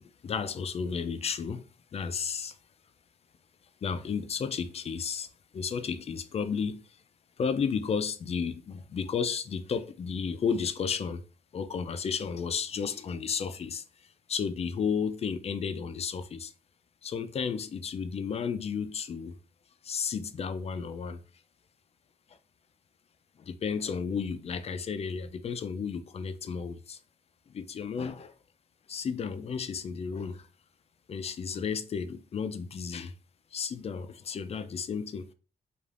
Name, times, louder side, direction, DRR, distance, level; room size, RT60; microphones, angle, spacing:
voice 1, 0.2-1.7 1.9-2.6 3.8-5.3 5.5-6.8 7.4-11.2 11.5-13.8 14.3-16.5 17.0-19.3 19.8-21.2 23.5-27.0 27.5-28.3 28.9-30.5 31.1-33.1 33.5-35.3, left 6 dB, 40° left, 0.3 m, -33 dB
2.4 x 2.4 x 3.2 m
cardioid pair, 100°, 16 cm